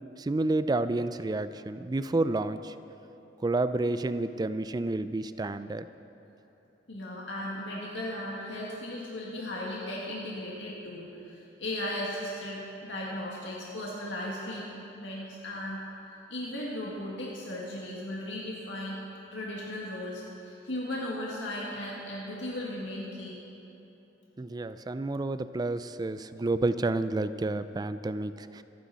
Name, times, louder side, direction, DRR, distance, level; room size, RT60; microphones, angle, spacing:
voice 1, 0.2-2.7 3.4-5.8 24.4-28.6, right 2 dB, 20° right, 12 dB, 0.4 m, -30 dB
voice 2, 6.9-14.6 15.0-15.8 16.3-19.0 19.3-23.4, left 1 dB, 90° left, -4 dB, 1.9 m, -36 dB
25.5 x 10.0 x 4.1 m, 2.9 s
head